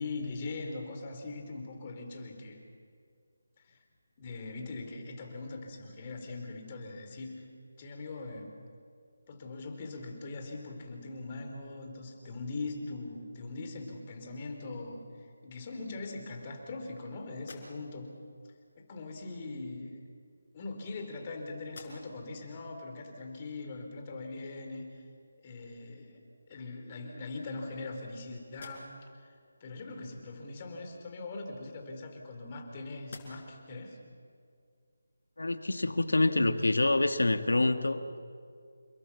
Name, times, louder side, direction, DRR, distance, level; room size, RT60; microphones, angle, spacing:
voice 1, 0.0-2.6 3.7-3.8 4.2-7.5 7.8-8.5 9.3-18.1 18.8-20.0 20.5-24.9 25.4-26.2 26.5-28.9 29.6-34.0, left 3 dB, 30° left, 3 dB, 4.0 m, -41 dB
sound 1, 17.3-18.2 19.3-19.5 20.4-21.3 21.6-22.3 22.8-22.9 25.6-25.7 26.2-26.8 27.4-28.1 28.5-29.2 31.2-32.6 33.0-33.7, left 3 dB, 50° left, 5.9 m, -54 dB
voice 2, 35.4-38.2, left 2 dB, 80° left, 8 dB, 1.8 m, -26 dB
29.0 x 21.0 x 7.2 m, 2.3 s
figure-of-eight pair, 160°, 0 cm